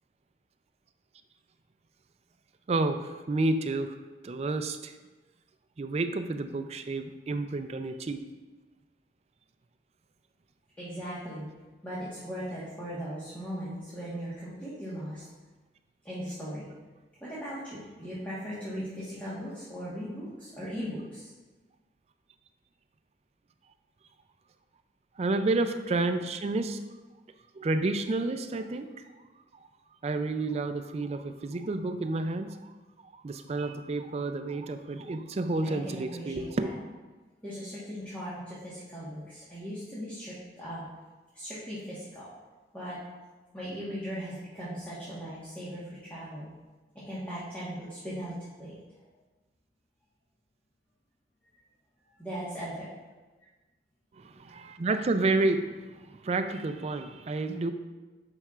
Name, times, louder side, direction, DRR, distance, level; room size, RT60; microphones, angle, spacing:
voice 1, 2.7-4.0 4.2-4.9 5.8-8.3 25.2-26.8 27.5-28.9 30.0-32.7 33.0-36.7 54.2-57.7, right 2 dB, 35° right, 9 dB, 0.4 m, -30 dB
voice 2, 10.8-11.5 11.8-15.3 16.0-16.7 17.2-21.3 35.6-36.8 37.4-40.8 41.3-42.3 42.7-43.0 43.5-46.5 47.0-48.8 52.2-52.9, equal, 10° left, -10 dB, 1.3 m, -38 dB
8.9 x 5.5 x 2.4 m, 1.2 s
head